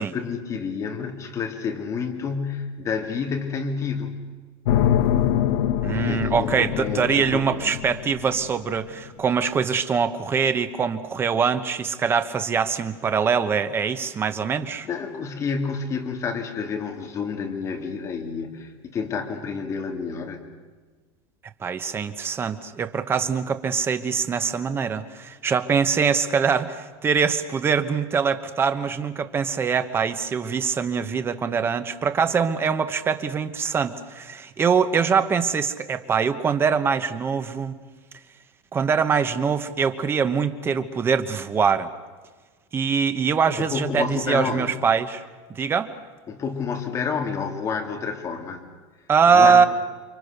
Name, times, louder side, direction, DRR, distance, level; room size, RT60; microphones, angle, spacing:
voice 1, 0.0-4.2 5.9-7.7 14.8-20.4 43.5-44.8 46.3-48.6 49.3-49.6, left 5 dB, 25° left, 3 dB, 2.6 m, -29 dB
sound 1, 4.7-8.8, left 10 dB, 80° left, 1.2 m, -24 dB
voice 2, 5.8-14.9 21.6-37.8 38.7-41.9 42.7-45.2 45.5-45.9 49.1-49.7, right 6 dB, 15° right, 10 dB, 1.1 m, -23 dB
29.5 x 24.5 x 6.7 m, 1.4 s
supercardioid pair, 165°, 13 cm